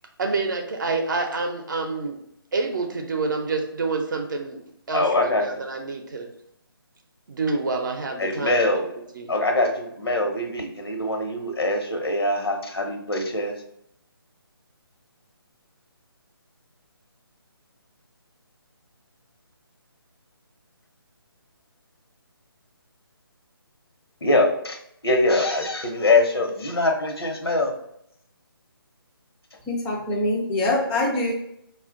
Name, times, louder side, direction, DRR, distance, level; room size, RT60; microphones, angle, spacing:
voice 1, 0.2-2.2 2.5-4.6 4.9-6.3 7.3-8.8 9.1-9.3, right 3 dB, 55° right, 3 dB, 0.6 m, -27 dB
voice 2, 4.9-5.4 8.2-8.9 9.3-13.5 24.2-27.7, left 2 dB, 85° left, 3 dB, 1.0 m, -23 dB
voice 3, 29.7-31.3, left 2 dB, 10° left, -2 dB, 0.4 m, -24 dB
4.2 x 2.4 x 3.6 m, 0.75 s
figure-of-eight pair, 160°, 13 cm